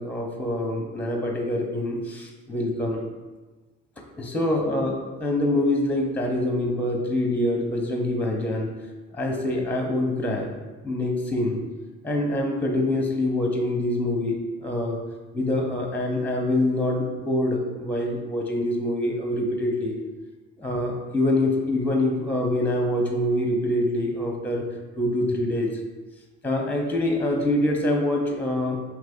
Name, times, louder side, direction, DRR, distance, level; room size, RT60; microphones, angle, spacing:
voice 1, 0.0-3.0 4.2-4.9 5.2-8.7 9.1-10.5 10.8-11.6 12.0-15.0 15.3-19.9 20.6-24.6 25.0-25.7 26.4-28.8, left 1 dB, 5° left, 1 dB, 0.8 m, -25 dB
5.2 x 3.0 x 2.6 m, 1.2 s
supercardioid pair, 80°, 33 cm